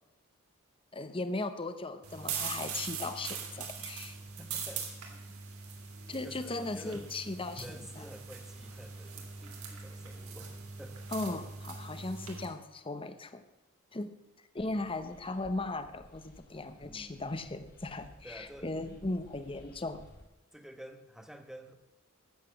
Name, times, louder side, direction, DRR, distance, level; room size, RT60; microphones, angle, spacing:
voice 1, 0.9-4.2 6.1-7.6 8.0-8.1 11.1-13.4 13.9-14.1 14.5-20.1, left 2 dB, 25° left, 10 dB, 0.9 m, -37 dB
sound 1, 2.0-12.4, right 6 dB, 85° right, 2.9 m, -42 dB
voice 2, 4.4-5.2 6.2-7.1 7.5-11.1 16.8-17.3 18.2-19.1 20.5-21.7, right 1 dB, ahead, 7 dB, 1.2 m, -50 dB
sound 2, 14.6-20.2, equal, 50° left, 3.4 m, -56 dB
13.0 x 8.2 x 7.8 m, 1.0 s
head